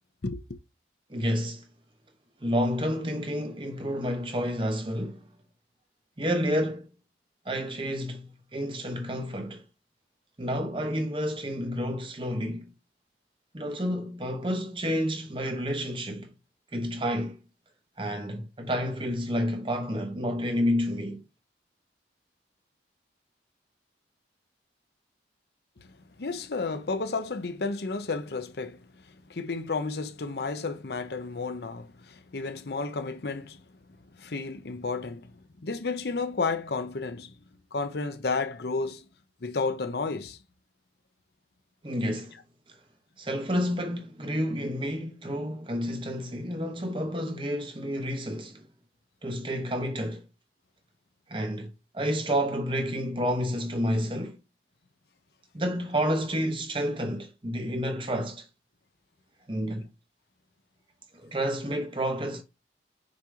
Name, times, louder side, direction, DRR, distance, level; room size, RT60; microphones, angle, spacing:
voice 1, 0.2-0.6 25.8-25.9 26.2-33.6 34.1-35.3 35.6-37.3 37.7-39.1 39.4-40.4, left 4 dB, 60° left, 0.7 m, -32 dB
voice 2, 1.1-1.7 2.4-5.3 6.2-6.9 7.4-9.6 10.4-12.7 13.5-16.3 16.7-17.4 18.0-21.2 41.8-42.4 43.2-48.7 49.2-50.3 51.3-54.4 55.5-58.5 59.5-59.9 61.1-62.4, equal, 30° right, 1.0 m, -30 dB
6.6 x 2.9 x 4.9 m
head